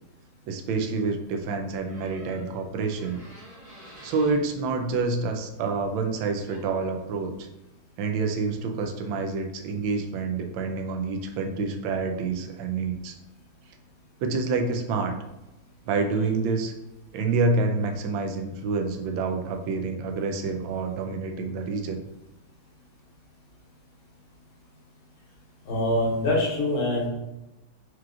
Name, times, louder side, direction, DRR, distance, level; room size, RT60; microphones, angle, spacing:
voice 1, 0.5-3.2 4.0-7.5 8.0-13.1 14.2-15.2 15.8-16.7 17.1-22.0, right 4 dB, 75° right, 4 dB, 1.3 m, -27 dB
Door, 1.8-4.4 6.2-6.3 6.5-6.8, right 1 dB, 20° right, 1.1 m, -48 dB
voice 2, 25.7-27.1, left 1 dB, 90° left, -3 dB, 2.1 m, -24 dB
4.7 x 3.0 x 2.4 m, 0.97 s
omnidirectional pair, 2.2 m